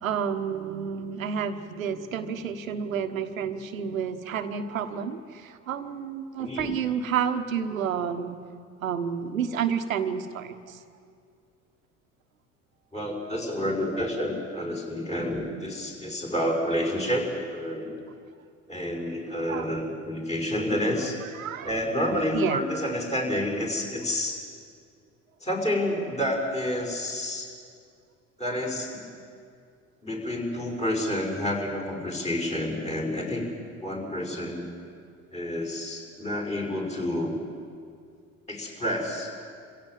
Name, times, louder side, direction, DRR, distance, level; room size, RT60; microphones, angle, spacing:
voice 1, 0.0-8.4 8.8-10.8 13.9-14.0 15.2-15.3 19.5-19.7 21.2-21.8 22.3-22.6, right 7 dB, 85° right, 8 dB, 1.2 m, -30 dB
voice 2, 6.4-6.7 12.9-17.9 18.7-21.2 21.6-24.4 25.4-27.5 28.4-29.1 30.0-33.5 33.8-34.6 35.3-37.4 38.5-39.4, left 1 dB, 15° left, 1 dB, 5.6 m, -29 dB
26.5 x 16.0 x 7.6 m, 2.3 s
hypercardioid pair, 65°, 40 cm